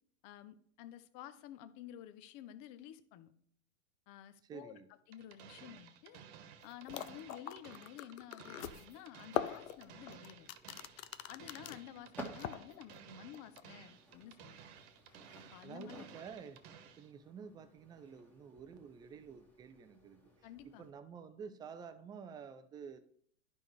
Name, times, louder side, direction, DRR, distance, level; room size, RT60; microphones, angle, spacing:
voice 1, 0.2-3.3 4.1-4.8 5.1-6.2 6.6-10.5 11.3-14.6 15.5-16.0 20.4-20.9, left 11 dB, 45° left, 13 dB, 0.7 m, -52 dB
voice 2, 4.4-4.9 15.6-20.2 20.6-23.1, right 6 dB, 10° right, 10 dB, 0.3 m, -50 dB
sound 1, 5.1-17.1, right 8 dB, 50° right, 1.2 m, -56 dB
sound 2, 6.6-6.7 6.9-11.8 12.2-13.0 13.3-13.6, left 10 dB, 80° left, 0.6 m, -41 dB
sound 3, 9.4-20.9, right 1 dB, 5° left, 1.5 m, -56 dB
11.0 x 5.3 x 3.2 m, 0.62 s
hypercardioid pair, 110°, 39 cm